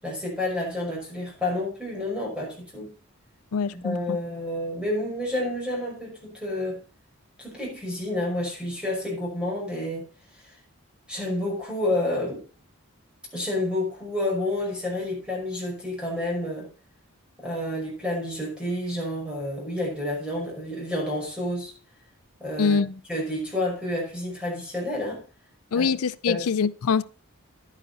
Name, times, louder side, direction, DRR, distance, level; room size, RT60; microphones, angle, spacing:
voice 1, 0.0-2.9 3.7-6.8 7.4-10.1 10.4-10.5 11.1-12.4 13.3-16.7 17.4-21.7 22.4-22.8 23.1-25.2 25.7-26.0 26.3-26.5, left 1 dB, 5° right, 5.4 m, -29 dB
voice 2, 3.5-4.2 22.6-23.0 25.7-27.0, left 5 dB, 85° left, 0.5 m, -24 dB
11.0 x 9.8 x 4.1 m
head